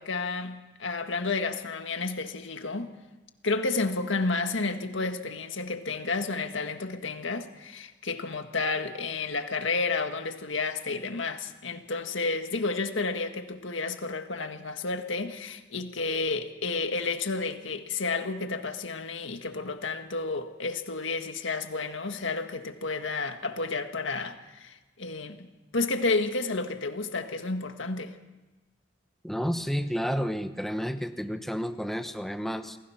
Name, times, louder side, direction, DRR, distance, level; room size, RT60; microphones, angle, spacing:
voice 1, 0.0-2.9 3.4-25.5 25.7-28.2, left 3 dB, 90° left, 1.8 m, -31 dB
voice 2, 29.2-32.8, equal, ahead, 1.0 m, -31 dB
28.5 x 20.0 x 5.9 m
head